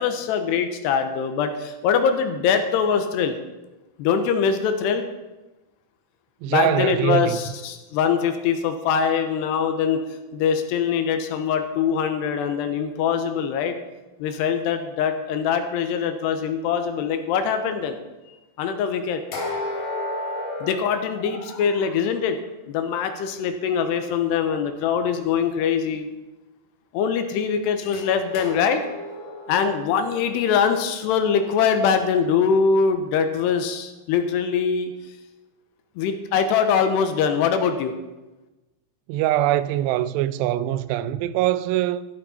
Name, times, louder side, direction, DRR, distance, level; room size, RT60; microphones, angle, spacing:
voice 1, 0.0-3.4 4.0-5.1 6.5-10.0 10.3-13.8 14.2-18.0 18.6-19.2 20.6-22.4 22.7-26.1 26.9-28.8 29.5-34.9 36.0-37.9, left 6 dB, 85° left, 3.1 m, -23 dB
voice 2, 6.4-7.4 39.1-42.1, right 13 dB, 90° right, 2.7 m, -23 dB
sound 1, 19.3-22.0 27.9-32.0, left 2 dB, 65° left, 4.3 m, -34 dB
13.5 x 12.0 x 4.3 m
omnidirectional pair, 4.8 m